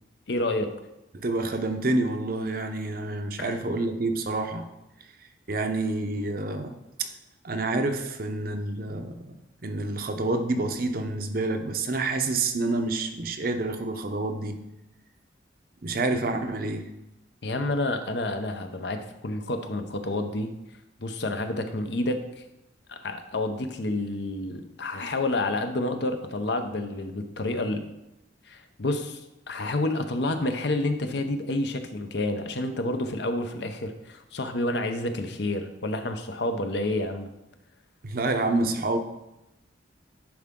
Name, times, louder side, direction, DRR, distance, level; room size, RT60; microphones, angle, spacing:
voice 1, 0.3-0.7 3.4-3.5 17.4-20.5 21.0-22.2 22.9-27.8 28.5-29.2 29.5-37.3, left 2 dB, 60° left, 7 dB, 0.7 m, -29 dB
voice 2, 1.1-4.6 5.5-7.1 7.4-9.1 9.6-14.6 15.8-16.8 38.0-39.0, right 2 dB, 50° right, 6 dB, 0.7 m, -28 dB
10.5 x 4.7 x 3.7 m, 0.92 s
head